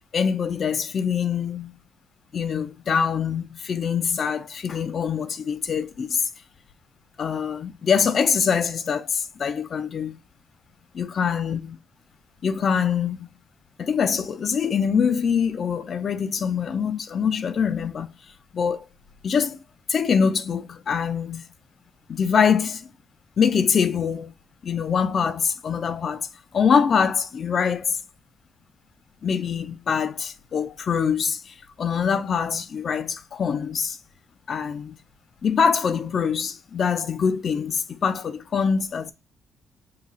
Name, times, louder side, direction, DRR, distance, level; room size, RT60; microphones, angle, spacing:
voice 1, 0.1-1.7 2.3-6.2 7.2-10.2 10.9-11.8 12.4-13.4 13.8-18.1 18.5-18.9 19.2-19.6 19.9-21.4 22.1-22.9 23.4-24.3 24.6-26.3 26.5-28.0 29.2-34.0 34.5-35.0 35.4-39.1, left 6 dB, 50° left, 0.5 m, -24 dB
5.7 x 2.3 x 3.7 m
cardioid pair, 90°, 0 cm